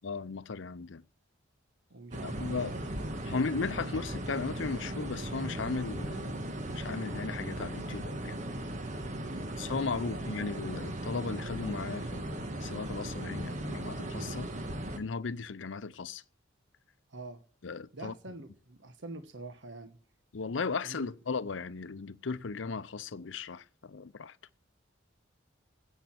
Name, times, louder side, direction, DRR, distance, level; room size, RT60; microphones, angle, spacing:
voice 1, 0.0-1.0 2.2-2.7 3.3-6.4 6.7-8.4 9.6-14.5 15.0-16.2 17.6-18.1 20.3-24.4, left 4 dB, 70° left, 0.6 m, -36 dB
voice 2, 1.9-3.4 9.2-10.3 17.1-17.4 17.9-20.0 20.8-21.1, right 2 dB, 65° right, 1.1 m, -46 dB
sound 1, 2.1-15.0, right 1 dB, 40° right, 1.5 m, -37 dB
10.5 x 8.1 x 8.6 m
head